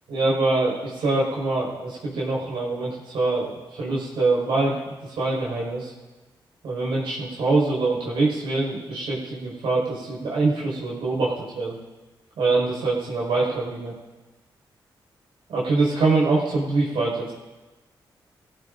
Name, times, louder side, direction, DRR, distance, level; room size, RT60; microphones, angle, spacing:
voice 1, 0.1-4.8 5.0-5.9 6.6-11.8 12.4-13.9 15.5-17.3, right 3 dB, 85° right, -5 dB, 5.4 m, -24 dB
22.5 x 15.5 x 2.7 m, 1.2 s
cardioid pair, 60°, 9 cm